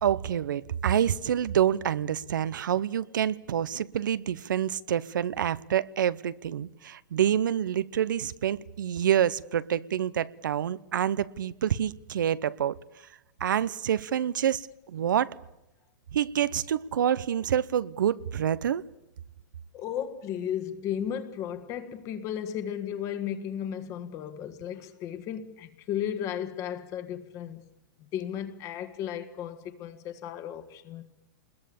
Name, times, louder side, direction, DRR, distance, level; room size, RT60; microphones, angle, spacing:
voice 1, 0.0-12.8 13.4-15.3 16.1-18.8, right 10 dB, 85° right, 0.9 m, -27 dB
voice 2, 19.7-27.6 28.0-31.0, left 9 dB, 30° left, 1.6 m, -34 dB
27.5 x 21.0 x 7.1 m
hypercardioid pair, 145°, 10 cm